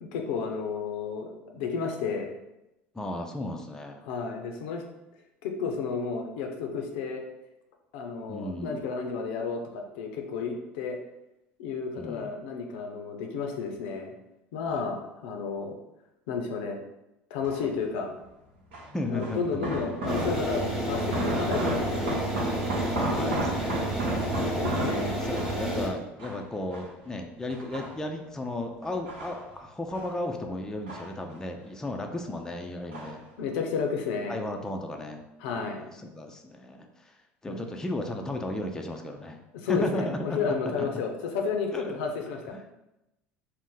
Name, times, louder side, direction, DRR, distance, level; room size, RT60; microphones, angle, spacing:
voice 1, 0.1-2.3 4.0-4.8 5.4-7.2 7.9-11.0 11.6-14.1 14.5-15.8 16.3-16.8 17.3-18.1 19.1-22.2 24.5-25.3 33.4-34.4 35.4-35.8 37.5-37.6 39.5-42.5, left 5 dB, 75° left, 3 dB, 0.5 m, -32 dB
voice 2, 2.9-4.0 8.3-8.8 12.0-12.4 14.7-14.9 18.9-19.8 22.9-23.9 25.0-33.2 34.3-35.2 35.5-35.6 36.0-37.1 37.4-39.4 39.7-41.0 41.7-42.0 42.5-42.6, left 1 dB, 10° left, 3 dB, 0.4 m, -35 dB
sound 1, 17.4-17.8 18.7-20.6 20.9-25.7 26.2-27.1 27.5-28.3 28.8-30.2 30.4-31.6 31.9-32.5 32.9-33.3 33.6-33.7, right 1 dB, 80° right, 0.9 m, -34 dB
sound 2, 20.1-25.9, right 1 dB, 5° right, 0.9 m, -30 dB
2.6 x 2.1 x 3.8 m, 0.92 s
hypercardioid pair, 80°, 6 cm